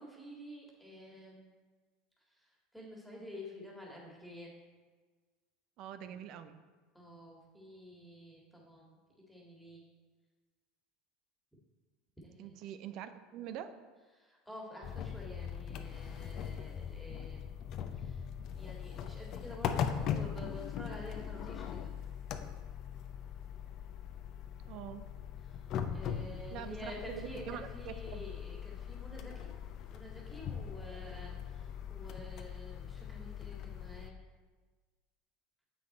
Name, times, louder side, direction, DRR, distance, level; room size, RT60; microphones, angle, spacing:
voice 1, 0.0-1.5 2.3-4.5 6.1-6.2 6.9-9.0 9.3-9.8 12.2-12.5 14.1-17.5 17.9-18.3 18.6-21.9 25.4-25.6 25.9-29.5 29.9-34.1, left 1 dB, ahead, -3 dB, 2.1 m, -49 dB
voice 2, 5.8-6.6 12.4-13.7 24.7-25.1 26.5-28.2, right 10 dB, 55° right, 10 dB, 0.5 m, -44 dB
sound 1, 14.8-34.1, left 8 dB, 50° left, 0.6 m, -40 dB
7.7 x 6.0 x 4.3 m, 1.4 s
hypercardioid pair, 75°, 0 cm